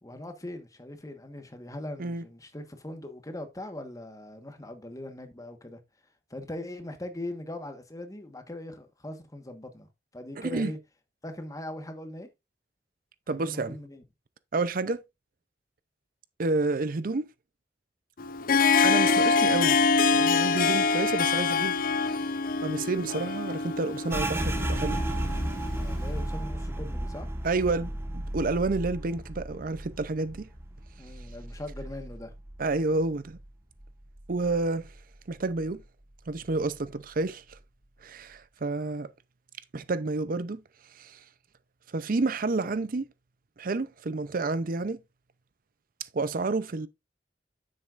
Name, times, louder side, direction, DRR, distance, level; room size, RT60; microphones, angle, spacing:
voice 1, 0.0-5.8 6.3-10.8 11.2-12.3 13.3-14.0 25.8-27.3 31.0-32.3, left 1 dB, 20° left, 1.3 m, -40 dB
voice 2, 10.4-10.7 13.3-13.7 14.5-15.0 16.4-17.3 18.8-21.7 22.1-22.2 22.6-25.0 27.4-30.5 32.6-33.4 34.3-34.9 35.3-35.8 36.3-37.6 38.0-39.1 39.7-40.6 41.0-41.2 41.9-43.1 43.6-45.0 46.1-46.9, right 3 dB, 50° right, 0.6 m, -29 dB
Harp, 18.2-25.9, left 4 dB, 55° left, 0.6 m, -25 dB
sound 1, 24.1-33.5 33.8-35.0 35.4-35.8 36.3-36.9, right 1 dB, 15° right, 1.3 m, -34 dB
9.8 x 7.6 x 2.5 m
head